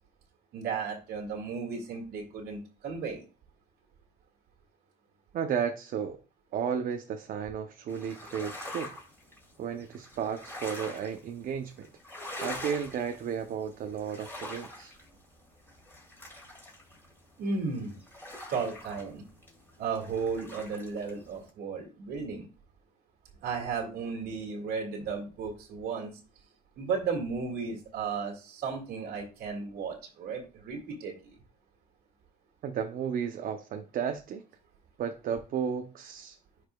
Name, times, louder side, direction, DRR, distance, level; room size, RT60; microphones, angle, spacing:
voice 1, 0.5-3.2 17.4-18.0 18.5-19.2 19.8-22.5 23.4-26.1 26.8-31.1, right 5 dB, 75° right, 1 dB, 2.0 m, -34 dB
voice 2, 5.3-6.2 6.5-8.9 9.6-11.9 12.4-14.9 32.6-34.4 35.0-36.4, right 7 dB, 55° right, 6 dB, 0.7 m, -33 dB
sound 1, 7.9-21.5, left 1 dB, 15° left, 2.7 m, -45 dB
10.5 x 4.9 x 2.3 m, 0.34 s
cardioid pair, 110°, 17 cm